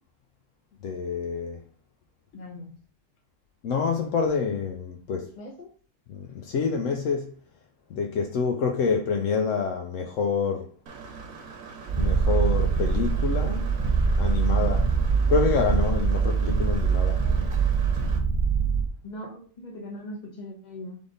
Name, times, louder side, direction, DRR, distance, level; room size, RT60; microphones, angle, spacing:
voice 1, 0.8-1.6 3.6-5.3 6.1-7.3 7.9-10.7 12.0-13.7 14.2-14.8 15.3-17.2, left 5 dB, 75° left, 0.9 m, -27 dB
voice 2, 2.3-2.7 5.4-5.7 14.5-14.7 19.0-21.0, left 1 dB, 35° left, 1.2 m, -39 dB
Engine / Mechanisms, 10.9-18.2, right 5 dB, 90° right, 1.3 m, -42 dB
Purr, 11.9-18.9, right 5 dB, 35° right, 0.6 m, -23 dB
3.5 x 3.5 x 3.9 m
omnidirectional pair, 1.4 m